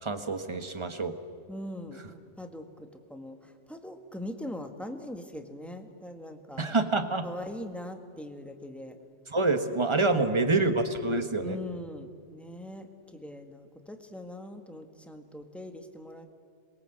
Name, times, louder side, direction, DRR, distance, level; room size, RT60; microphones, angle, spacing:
voice 1, 0.0-1.2 6.6-7.2 9.3-11.6, right 3 dB, 25° right, 8 dB, 1.5 m, -27 dB
voice 2, 1.5-6.6 7.2-9.0 10.1-10.3 11.4-16.3, left 1 dB, ahead, 5 dB, 1.8 m, -41 dB
27.5 x 22.0 x 8.0 m, 2.2 s
omnidirectional pair, 1.2 m